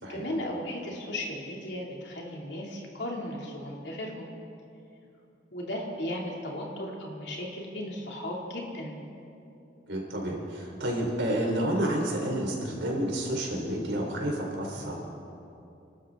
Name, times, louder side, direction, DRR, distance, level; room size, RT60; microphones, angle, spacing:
voice 1, 0.1-4.3 5.5-9.0, left 1 dB, 70° left, -1 dB, 2.6 m, -36 dB
voice 2, 9.9-14.9, right 1 dB, 80° right, -1 dB, 3.8 m, -30 dB
27.5 x 12.5 x 3.7 m, 2.7 s
head